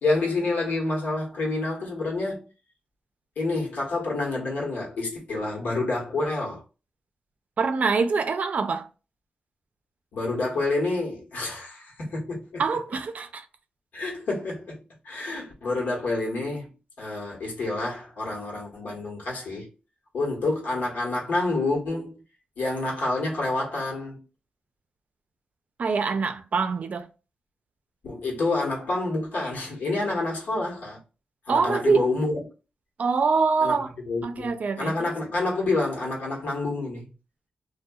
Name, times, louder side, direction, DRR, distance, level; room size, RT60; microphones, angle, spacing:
voice 1, 0.0-2.5 3.4-6.6 10.1-12.6 13.9-16.7 17.0-19.7 20.1-22.2 22.6-24.2 28.0-31.0 31.5-32.4 33.6-37.1, left 2 dB, 90° left, 1.0 m, -28 dB
voice 2, 7.6-8.9 12.6-13.5 25.8-27.1 31.5-32.0 33.0-33.9 34.2-35.1, right 4 dB, 60° right, 0.4 m, -24 dB
2.6 x 2.2 x 2.2 m
cardioid pair, 80°, 3 cm